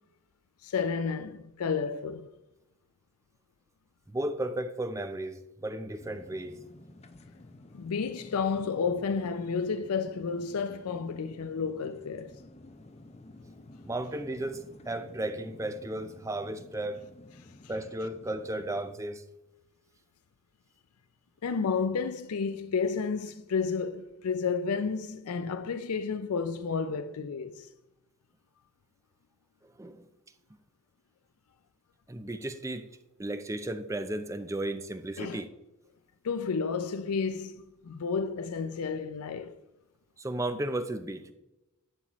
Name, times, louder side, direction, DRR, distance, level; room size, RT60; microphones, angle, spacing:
voice 1, 0.6-2.3 7.7-12.4 21.4-27.7 35.2-35.4 36.2-39.6, left 5 dB, 80° left, 0.4 m, -31 dB
voice 2, 4.1-6.6 13.8-17.0 17.7-19.3 29.8-30.0 32.1-32.9 33.2-35.5 40.2-41.3, right 1 dB, 15° right, 0.4 m, -34 dB
sound 1, 6.0-18.9, left 2 dB, 30° left, 0.6 m, -52 dB
11.0 x 7.4 x 3.0 m
head